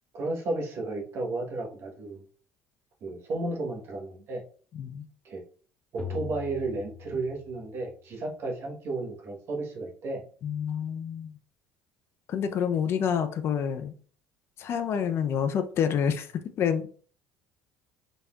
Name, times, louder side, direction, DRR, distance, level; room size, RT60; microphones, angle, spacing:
voice 1, 0.1-2.2 3.0-4.4 5.2-5.4 5.9-10.2, right 2 dB, 55° right, 2 dB, 1.2 m, -33 dB
voice 2, 4.7-5.1 10.4-11.3 12.3-13.9 14.6-16.3 16.6-16.9, left 8 dB, 50° left, 9 dB, 0.6 m, -28 dB
sound 1, 6.0-7.9, left 7 dB, 15° left, 1.0 m, -41 dB
4.0 x 3.4 x 2.3 m, 0.42 s
supercardioid pair, 85°, 5 cm